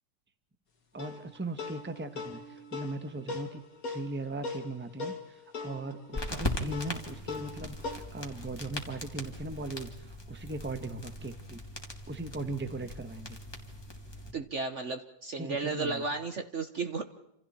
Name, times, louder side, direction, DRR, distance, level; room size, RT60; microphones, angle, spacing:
voice 1, 0.9-3.6 3.9-11.6 12.1-13.4 15.4-16.0, right 2 dB, 5° right, 9 dB, 1.1 m, -39 dB
sound 1, 1.0-8.0, left 4 dB, 50° left, 2.2 m, -40 dB
sound 2, 6.1-14.3, left 1 dB, 15° left, 2.6 m, -39 dB
voice 2, 14.3-17.0, right 4 dB, 45° right, 8 dB, 1.2 m, -34 dB
28.0 x 27.5 x 4.4 m, 0.81 s
omnidirectional pair, 1.9 m